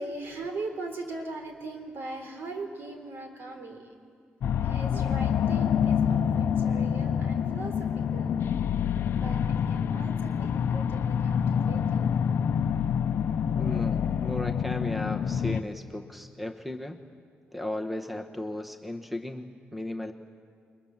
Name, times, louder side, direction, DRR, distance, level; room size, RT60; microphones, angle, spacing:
voice 1, 0.0-3.9 4.6-8.3 9.2-12.5, right 2 dB, 65° right, 5 dB, 4.0 m, -40 dB
sound 1, 4.4-15.6, left 8 dB, 65° left, 0.7 m, -27 dB
voice 2, 13.6-17.0 17.5-20.1, left 1 dB, ahead, 6 dB, 1.1 m, -35 dB
29.5 x 22.5 x 7.3 m, 2.2 s
cardioid pair, 135°, 4 cm